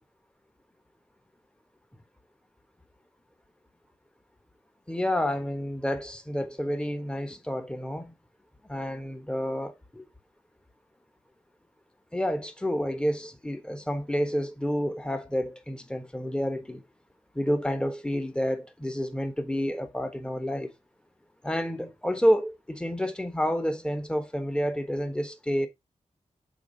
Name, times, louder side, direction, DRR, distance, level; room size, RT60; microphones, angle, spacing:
voice 1, 4.9-8.1 8.7-10.0 12.1-16.8 17.3-20.7 21.4-25.7, equal, 5° left, 1.2 m, -29 dB
7.2 x 4.1 x 3.9 m
wide cardioid pair, 100°, 12 cm